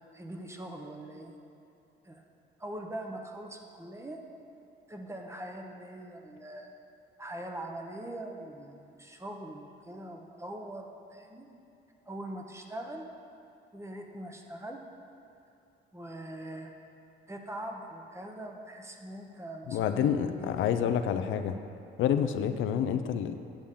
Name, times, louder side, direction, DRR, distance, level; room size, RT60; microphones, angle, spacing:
voice 1, 0.1-1.3 2.0-2.2 2.6-4.2 4.9-6.7 7.2-11.5 12.1-13.1 13.7-14.8 15.9-16.7 17.3-20.5, right 1 dB, 15° right, 2 dB, 0.9 m, -42 dB
voice 2, 19.7-21.6 22.0-23.4, left 8 dB, 80° left, 9 dB, 0.5 m, -28 dB
8.7 x 8.3 x 3.7 m, 2.7 s
cardioid pair, 90°, 20 cm